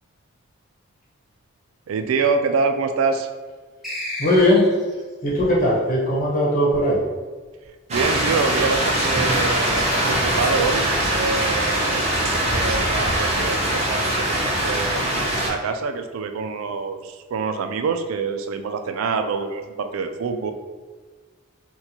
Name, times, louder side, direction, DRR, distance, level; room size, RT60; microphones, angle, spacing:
voice 1, 1.9-3.3 7.9-15.0 15.5-20.5, right 5 dB, 85° right, 7 dB, 0.3 m, -26 dB
sound 1, 3.8-5.0, left 1 dB, ahead, 0.8 m, -32 dB
voice 2, 4.2-4.7 5.2-7.0, left 1 dB, 40° left, -6 dB, 1.1 m, -18 dB
sound 2, 7.9-15.5, right 1 dB, 30° right, 0.6 m, -22 dB
4.2 x 2.3 x 2.8 m, 1.4 s
head